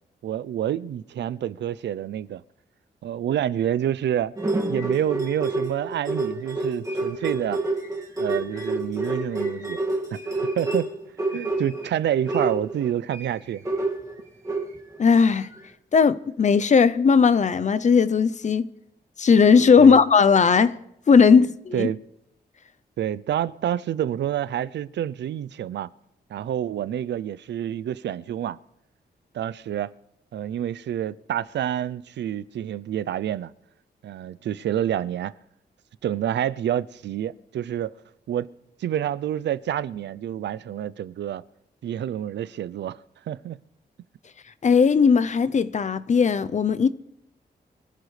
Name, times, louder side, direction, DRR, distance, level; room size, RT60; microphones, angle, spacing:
voice 1, 0.2-2.4 3.0-4.3 4.7-7.6 8.2-9.8 10.1-10.9 11.3-13.6 19.8-20.0 21.7-22.0 23.0-25.9 26.3-28.6 29.3-29.9 30.3-33.5 34.0-35.3 36.0-37.9 38.3-38.5 38.8-41.4 41.8-43.0 43.3-43.6, right 10 dB, 85° right, 0.5 m, -28 dB
sound 1, 4.4-11.9 12.3-15.0 15.5-15.6, right 2 dB, 20° right, 2.1 m, -28 dB
voice 2, 15.0-15.5 15.9-18.7 19.2-20.7 21.1-21.9 44.6-46.9, left 5 dB, 45° left, 0.6 m, -17 dB
24.5 x 14.5 x 3.3 m
wide cardioid pair, 105°, 18 cm